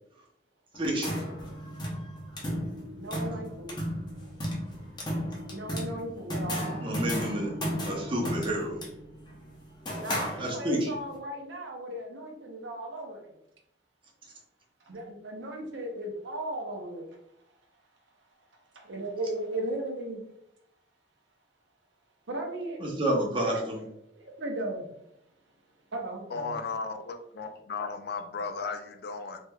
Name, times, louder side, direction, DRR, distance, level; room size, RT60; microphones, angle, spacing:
sound 1, 0.7-10.9, equal, 25° left, 0.7 m, -35 dB
voice 1, 0.8-1.2 6.8-7.5 7.8-8.8 10.4-10.9 22.8-23.8, right 1 dB, 30° right, -2 dB, 0.7 m, -29 dB
voice 2, 2.9-3.8 5.5-6.9 10.0-13.3 14.9-17.2 18.8-20.2 22.3-22.8 23.5-23.6 24.2-24.9 25.9-26.6, right 1 dB, 85° right, 2 dB, 0.8 m, -36 dB
voice 3, 26.3-29.4, left 4 dB, 55° left, 7 dB, 0.4 m, -35 dB
3.2 x 3.1 x 2.3 m, 0.76 s
head